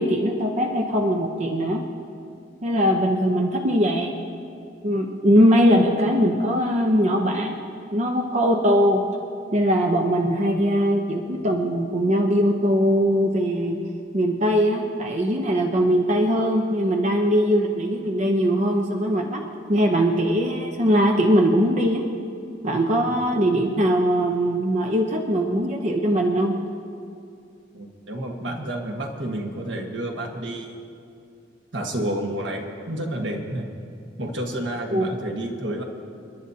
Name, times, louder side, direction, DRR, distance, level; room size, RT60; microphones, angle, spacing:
voice 1, 0.0-1.8 2.6-4.1 4.8-7.6 7.9-9.0 9.5-13.8 14.1-19.4 19.7-22.0 22.6-26.6 34.9-35.1, equal, 40° right, 2 dB, 0.8 m, -21 dB
voice 2, 27.7-30.8 31.7-33.7 34.2-35.9, right 1 dB, 75° right, 2 dB, 1.5 m, -30 dB
29.0 x 11.0 x 2.8 m, 2.5 s
head